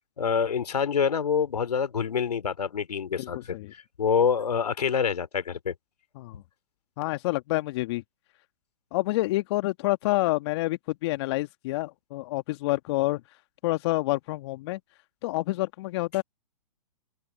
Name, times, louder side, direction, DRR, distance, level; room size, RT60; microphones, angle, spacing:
voice 1, 0.2-5.7, left 6 dB, 75° left, 2.9 m, -26 dB
voice 2, 3.2-3.7 6.2-6.4 7.0-8.0 8.9-13.2 13.6-14.8 15.2-16.2, left 19 dB, 40° left, 1.4 m, -28 dB
open air
hypercardioid pair, 125°, 20 cm